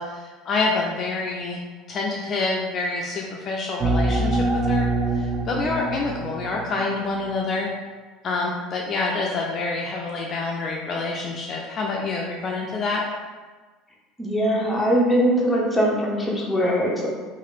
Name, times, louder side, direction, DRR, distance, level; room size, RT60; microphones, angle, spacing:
voice 1, 0.0-1.6 1.9-7.7 8.2-13.0, left 3 dB, 40° left, -1 dB, 0.4 m, -27 dB
sound 1, 3.8-7.3, right 2 dB, 35° right, 0.3 m, -25 dB
voice 2, 14.2-17.1, equal, 5° left, -4 dB, 0.7 m, -21 dB
2.9 x 2.4 x 3.1 m, 1.4 s
supercardioid pair, 120°, 0 cm